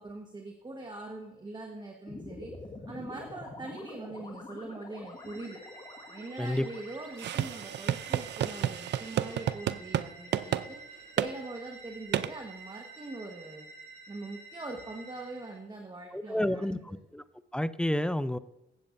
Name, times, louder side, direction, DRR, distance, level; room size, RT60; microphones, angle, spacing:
voice 1, 0.0-2.5 2.9-5.6 6.1-10.8 11.2-13.7 14.1-17.0, right 2 dB, 20° right, 3 dB, 1.3 m, -42 dB
sound 1, 2.1-10.4, left 3 dB, 30° left, 1.6 m, -47 dB
sound 2, 5.1-15.6, right 3 dB, 35° right, 4.1 m, -50 dB
sound 3, 7.2-10.1 10.3-10.7 11.2-11.3 12.1-12.3, right 11 dB, 60° right, 0.5 m, -30 dB
voice 2, 16.1-17.2 17.5-18.4, left 1 dB, 5° left, 14 dB, 0.4 m, -30 dB
15.5 x 7.9 x 2.6 m, 0.89 s
cardioid pair, 90°, 20 cm